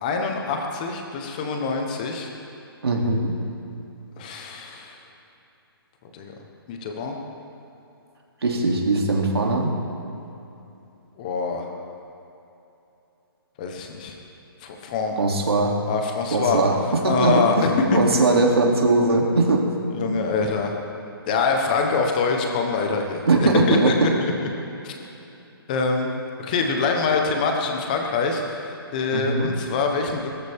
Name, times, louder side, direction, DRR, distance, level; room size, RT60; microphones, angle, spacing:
voice 1, 0.0-2.3 4.2-5.0 6.1-6.3 6.7-7.2 11.2-11.7 13.6-14.2 14.6-15.2 15.9-16.6 17.1-18.0 19.9-20.8 21.3-23.9 24.2-24.3 24.8-24.9 25.7-26.1 26.4-30.3, left 4 dB, 20° left, 3 dB, 1.1 m, -25 dB
voice 2, 2.8-3.4 8.4-9.7 15.2-15.8 16.3-17.7 17.9-19.7 20.0-20.2 23.3-24.1 29.1-29.5, right 2 dB, 85° right, 0 dB, 2.9 m, -20 dB
21.5 x 14.0 x 3.7 m, 2.9 s
hypercardioid pair, 175°, 13 cm